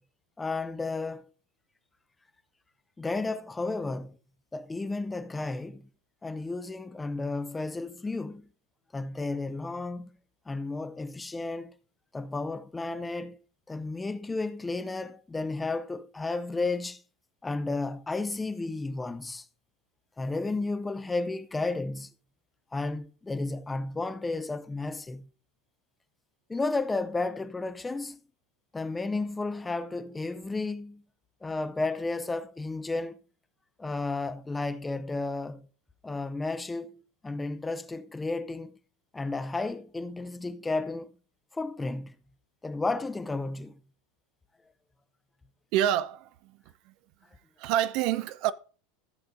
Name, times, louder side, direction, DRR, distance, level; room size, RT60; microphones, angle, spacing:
voice 1, 0.4-1.3 3.0-4.2 4.5-5.9 6.2-8.5 8.9-10.2 10.5-11.7 12.1-13.4 13.7-17.0 17.4-19.5 20.2-22.1 22.7-25.3 26.5-28.2 28.7-31.0 31.4-33.2 33.8-35.7 36.0-38.8 39.1-41.1 41.5-42.2 42.6-43.8, left 3 dB, 15° left, 0.6 m, -33 dB
voice 2, 45.7-46.6 46.9-47.0 47.6-48.5, right 12 dB, 55° right, 0.5 m, -27 dB
16.0 x 6.8 x 2.6 m
hypercardioid pair, 85°, 0 cm